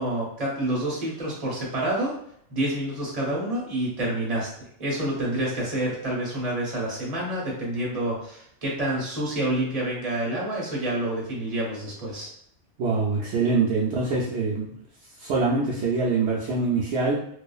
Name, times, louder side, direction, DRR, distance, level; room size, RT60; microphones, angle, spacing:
voice 1, 0.0-2.1 2.5-4.5 4.8-12.3, right 1 dB, 35° right, -4 dB, 1.0 m, -28 dB
voice 2, 12.8-14.7 15.2-17.1, right 4 dB, 70° right, -5 dB, 0.8 m, -24 dB
2.7 x 2.4 x 2.3 m, 0.67 s
omnidirectional pair, 1.2 m